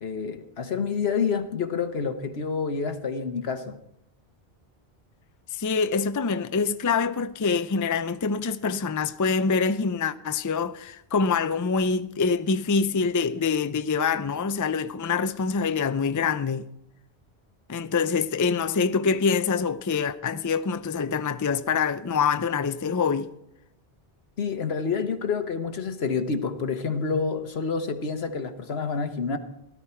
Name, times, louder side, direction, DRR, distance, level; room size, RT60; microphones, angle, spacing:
voice 1, 0.0-3.8 24.4-29.4, left 5 dB, 80° left, 1.4 m, -28 dB
voice 2, 5.5-16.6 17.7-23.3, left 5 dB, 25° left, 0.4 m, -25 dB
17.0 x 12.5 x 4.4 m
omnidirectional pair, 1.0 m